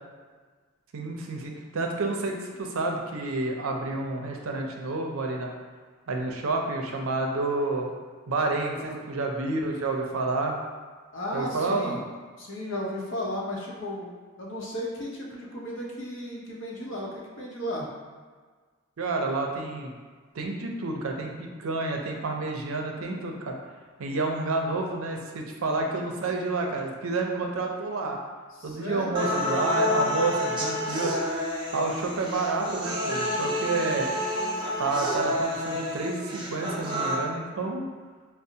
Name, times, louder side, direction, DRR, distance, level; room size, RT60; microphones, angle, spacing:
voice 1, 0.9-5.5 6.1-7.9 8.3-10.6 11.3-12.0 19.0-19.9 20.3-23.6 24.0-28.2 28.6-31.1 31.7-34.1 34.8-37.9, right 3 dB, 75° right, 1 dB, 0.5 m, -29 dB
voice 2, 11.1-12.0 12.4-14.1 14.4-17.9 28.5-29.5, left 1 dB, 65° left, -3 dB, 0.7 m, -34 dB
sound 1, 29.2-37.2, left 1 dB, 20° right, 0.4 m, -29 dB
5.1 x 2.0 x 2.7 m, 1.5 s
head